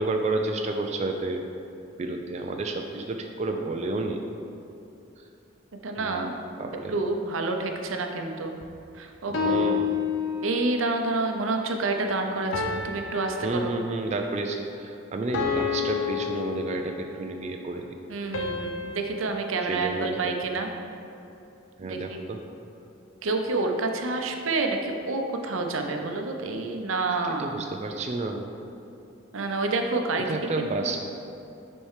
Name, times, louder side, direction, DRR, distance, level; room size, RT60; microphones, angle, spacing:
voice 1, 0.0-1.4 2.0-4.2 5.9-6.3 6.6-6.9 9.3-9.9 13.4-17.9 19.6-20.3 21.8-22.4 27.2-28.5 30.3-31.0, right 2 dB, 35° right, 3 dB, 0.3 m, -30 dB
voice 2, 5.8-6.3 6.9-8.5 8.9-9.7 10.4-13.7 18.1-20.7 21.8-22.2 23.2-27.6 29.3-30.3 30.6-30.9, right 3 dB, 85° right, 4 dB, 0.6 m, -28 dB
sound 1, 9.3-10.9 12.5-14.2 15.3-17.3 18.3-20.7, left 6 dB, 80° left, 0.7 m, -30 dB
6.3 x 4.3 x 4.8 m, 2.8 s
head